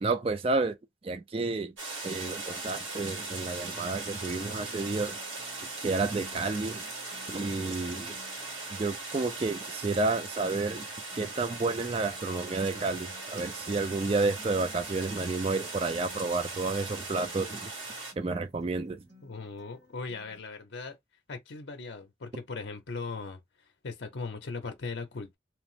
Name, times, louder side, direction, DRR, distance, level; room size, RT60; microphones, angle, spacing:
voice 1, 0.0-0.7 1.0-1.7 2.0-5.2 5.8-6.8 7.3-8.1 8.7-10.9 11.1-17.6 18.2-19.0, right 3 dB, 30° right, 0.3 m, -30 dB
sound 1, 1.8-18.1, right 3 dB, 85° right, 1.8 m, -39 dB
Acoustic guitar, 4.4-20.4, left 2 dB, 65° right, 1.5 m, -58 dB
voice 2, 19.2-21.0 21.3-23.4 23.8-25.3, left 4 dB, 65° left, 0.6 m, -38 dB
3.0 x 2.0 x 3.0 m
head